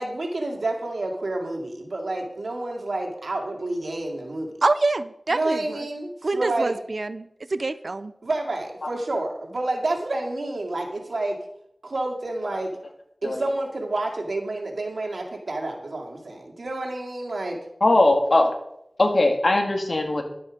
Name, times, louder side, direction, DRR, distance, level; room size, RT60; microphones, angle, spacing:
voice 1, 0.0-4.5 5.3-6.7 8.2-11.4 11.8-12.7 13.2-17.6, right 2 dB, 90° right, 1 dB, 2.3 m, -29 dB
voice 2, 4.6-5.9 6.2-8.1, right 2 dB, 60° right, 13 dB, 0.6 m, -26 dB
voice 3, 17.8-18.6 19.0-20.2, left 2 dB, 60° left, 3 dB, 2.1 m, -20 dB
11.5 x 8.7 x 5.1 m, 0.77 s
wide cardioid pair, 60°, 0 cm